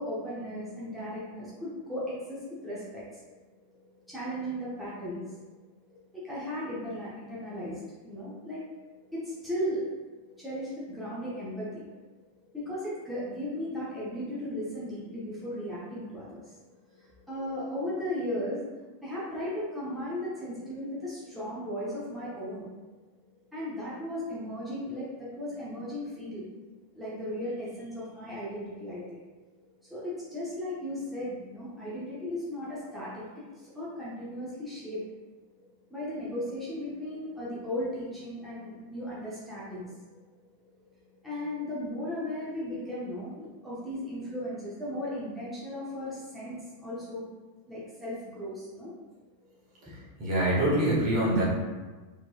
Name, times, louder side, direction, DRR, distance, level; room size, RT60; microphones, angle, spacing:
voice 1, 0.0-3.4 3.8-5.4 5.9-8.8 9.1-9.9 10.3-11.8 12.5-16.6 16.9-18.6 19.0-22.6 23.5-26.5 26.9-29.2 29.8-35.0 35.9-40.0 40.8-40.9 41.2-47.3 47.7-48.9 49.8-50.0, left 1 dB, 5° right, -9 dB, 1.0 m, -36 dB
voice 2, 50.2-51.4, right 1 dB, 40° right, -6 dB, 1.3 m, -24 dB
4.2 x 3.1 x 2.3 m, 1.3 s
figure-of-eight pair, 90°, 0 cm